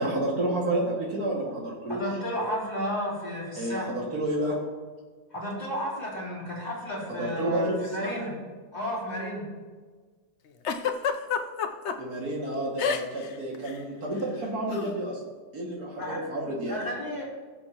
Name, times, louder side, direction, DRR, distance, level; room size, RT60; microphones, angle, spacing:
voice 1, 0.0-2.0 3.6-4.6 7.2-8.3 12.0-15.2 15.5-16.8, right 1 dB, 70° right, -3 dB, 2.6 m, -30 dB
voice 2, 1.9-3.8 5.3-8.3 8.7-9.5 16.0-16.2 16.7-17.2, equal, 25° left, -6 dB, 3.0 m, -32 dB
Giggle, 10.6-11.9 12.8-13.3 13.5-13.8 14.7-14.9, left 7 dB, 60° left, 0.8 m, -28 dB
18.0 x 6.9 x 2.9 m, 1.4 s
omnidirectional pair, 1.7 m